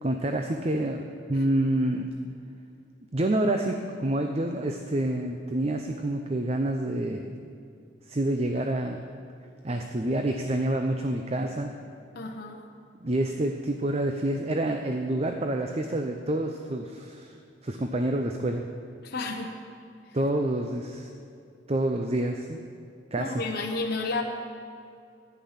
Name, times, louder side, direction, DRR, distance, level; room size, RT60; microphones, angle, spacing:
voice 1, 0.0-2.1 3.1-7.4 8.1-9.0 9.6-11.7 13.0-17.3 17.6-18.6 20.1-21.1 21.7-22.6 23.1-23.4, right 1 dB, 35° right, 4 dB, 0.6 m, -28 dB
voice 2, 12.1-12.6 19.0-19.5 23.2-24.2, left 3 dB, 55° left, 1 dB, 1.0 m, -31 dB
13.5 x 10.5 x 5.7 m, 2.4 s
head